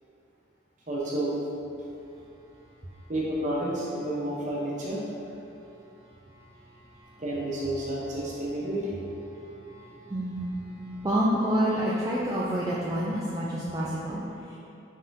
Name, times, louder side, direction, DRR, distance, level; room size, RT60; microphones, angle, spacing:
voice 1, 0.9-1.4 3.1-5.0 7.2-9.0, right 1 dB, 40° right, -6 dB, 0.9 m, -30 dB
voice 2, 6.5-7.2 9.3-14.6, equal, 20° right, -7 dB, 0.3 m, -29 dB
5.5 x 3.6 x 2.7 m, 2.8 s
head